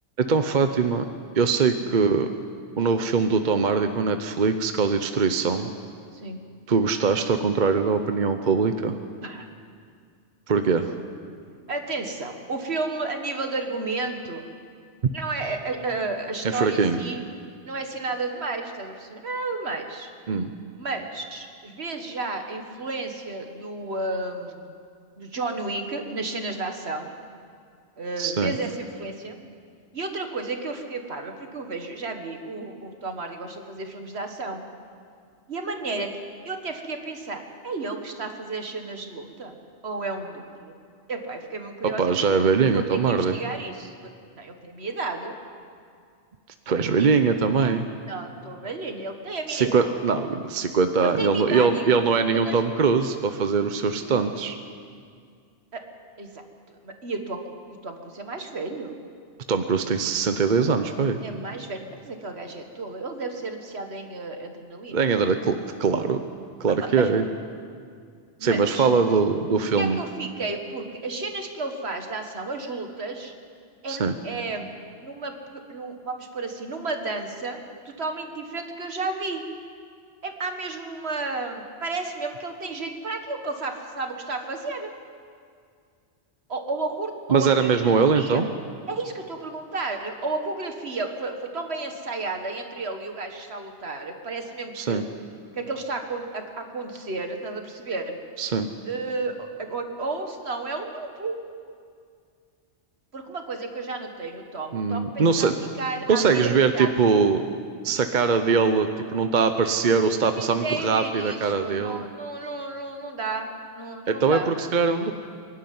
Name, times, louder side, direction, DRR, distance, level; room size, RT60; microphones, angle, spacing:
voice 1, 0.2-1.1 1.3-2.3 2.8-5.7 6.7-8.9 10.5-10.9 16.5-17.0 20.3-20.5 28.2-28.5 42.0-43.3 46.7-47.9 49.5-54.6 59.5-61.2 64.9-66.2 66.6-67.2 68.4-70.0 73.9-74.1 87.3-88.5 94.7-95.0 98.4-98.7 104.7-105.5 106.1-107.4 107.8-112.0 114.1-115.1, right 5 dB, 45° right, 8 dB, 0.9 m, -22 dB
voice 2, 11.7-14.5 15.1-17.2 17.7-20.1 20.8-24.7 25.2-27.1 28.0-29.4 29.9-34.6 35.5-36.1 36.5-39.5 39.8-40.8 41.1-44.1 44.4-45.4 46.7-47.2 48.1-49.9 51.0-52.1 52.3-52.6 55.7-55.8 56.2-57.4 57.7-58.9 61.2-65.0 66.6-67.1 68.4-68.9 69.6-73.3 73.8-74.7 75.0-79.4 80.2-84.9 86.5-88.4 88.9-95.1 95.5-98.2 98.8-101.4 103.1-105.5 105.8-107.1 110.4-114.5, right 3 dB, 65° right, 5 dB, 1.9 m, -32 dB
23.5 x 11.5 x 9.4 m, 2.2 s
omnidirectional pair, 1.2 m